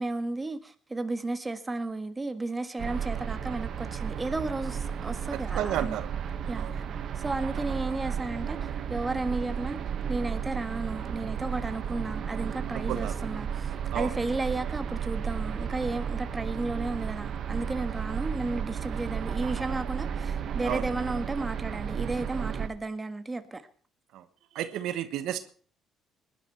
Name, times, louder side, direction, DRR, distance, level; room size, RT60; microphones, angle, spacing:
voice 1, 0.0-6.0 6.5-6.8 7.1-9.8 10.1-23.6, right 2 dB, 20° right, 1.6 m, -33 dB
sound 1, 2.8-22.7, right 7 dB, 60° right, 1.5 m, -33 dB
voice 2, 5.3-6.1 6.6-6.7 12.7-13.1 13.9-14.1 20.6-20.9 24.1-24.3 24.5-25.5, right 11 dB, 80° right, 1.2 m, -32 dB
20.0 x 12.0 x 4.5 m
cardioid pair, 85°, 0 cm